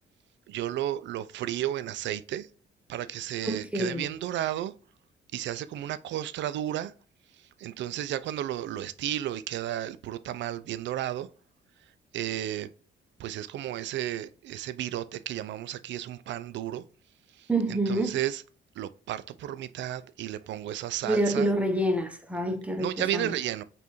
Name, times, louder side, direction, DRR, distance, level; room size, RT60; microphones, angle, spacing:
voice 1, 0.5-2.5 2.9-4.7 5.3-6.9 7.6-11.3 12.1-12.7 13.2-16.8 17.7-18.4 18.8-21.5 22.8-23.6, right 12 dB, 65° right, 0.4 m, -33 dB
voice 2, 3.4-4.1 17.5-18.2 21.0-23.3, right 1 dB, 5° right, 0.7 m, -27 dB
5.4 x 2.5 x 3.0 m
cardioid pair, 90°, 20 cm